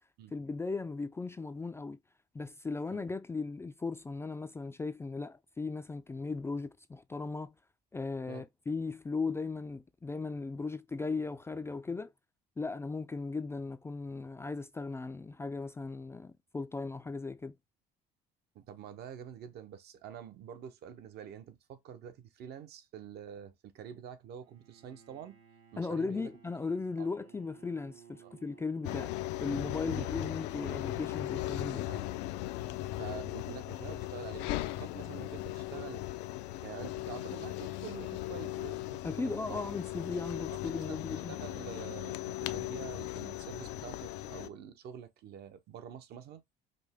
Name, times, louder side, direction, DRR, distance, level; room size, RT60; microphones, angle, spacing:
voice 1, 0.3-2.0 2.3-7.6 7.9-12.1 12.6-17.5 25.8-31.9 39.0-41.4, left 4 dB, 15° left, 0.3 m, -37 dB
voice 2, 18.5-25.4 25.7-26.3 27.0-27.1 28.2-28.3 29.8-30.1 31.9-32.0 32.9-34.5 34.8-36.0 36.6-39.6 40.5-40.6 40.9-46.4, right 8 dB, 60° right, 0.8 m, -47 dB
Bowed string instrument, 24.4-29.7, right 8 dB, 90° right, 1.4 m, -59 dB
sound 1, 28.8-44.5, left 15 dB, 85° left, 0.5 m, -38 dB
5.2 x 2.1 x 3.5 m
cardioid pair, 105°, 18 cm